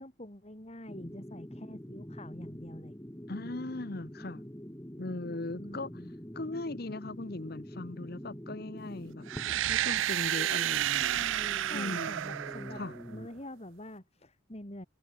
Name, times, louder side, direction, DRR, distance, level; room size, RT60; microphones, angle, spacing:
voice 1, 0.0-3.0 5.6-6.1 11.7-12.8 13.1-14.9, left 1 dB, 35° left, 3.5 m, -46 dB
sound 1, 0.9-13.3, equal, 15° left, 1.6 m, -45 dB
voice 2, 3.3-4.4 5.0-5.9 6.3-9.3 9.7-11.2 11.7-12.2 12.7-12.9, left 2 dB, 50° left, 1.0 m, -38 dB
sound 2, 9.3-13.2, right 12 dB, 80° right, 0.4 m, -31 dB
head